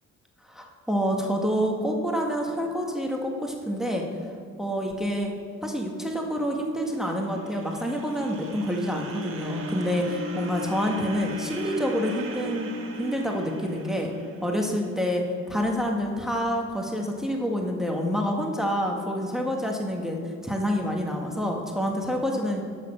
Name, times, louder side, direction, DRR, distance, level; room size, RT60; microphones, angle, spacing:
voice 1, 0.5-4.1 4.6-5.3 5.6-12.7 13.0-14.1 14.4-22.6, equal, ahead, 1 dB, 1.3 m, -27 dB
sound 1, 6.8-15.0, right 1 dB, 45° right, 1.6 m, -37 dB
10.5 x 6.8 x 6.2 m, 2.2 s
cardioid pair, 90°, 30 cm